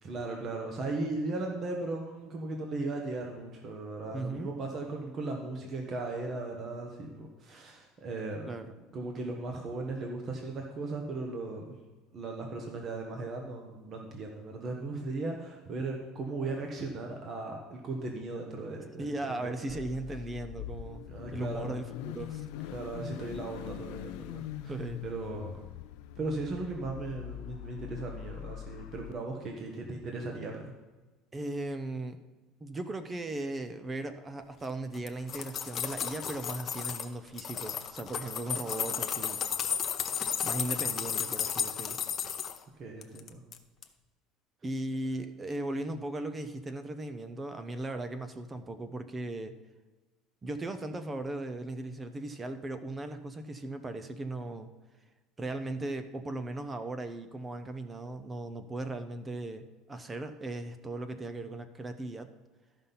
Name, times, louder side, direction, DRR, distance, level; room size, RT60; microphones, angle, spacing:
voice 1, 0.0-8.5 8.9-11.6 12.1-19.7 21.0-21.7 22.7-24.7 25.0-25.5 26.2-30.7 42.8-43.4, right 3 dB, 35° right, 2 dB, 1.2 m, -37 dB
voice 2, 4.1-4.5 8.5-8.6 19.0-22.5 24.7-25.0 31.3-32.2 32.6-39.4 40.4-42.0 44.6-49.5 50.4-54.7 55.4-62.3, right 2 dB, 15° right, 9 dB, 0.6 m, -37 dB
Car / Idling / Accelerating revving vroom, 19.7-29.1, left 12 dB, 75° left, 0.4 m, -42 dB
sound 1, 34.9-37.1 37.4-42.6 43.0-43.6 43.8-43.9, left 8 dB, 35° left, 0.7 m, -33 dB
13.0 x 5.5 x 5.7 m, 1.3 s
cardioid pair, 145°, 0 cm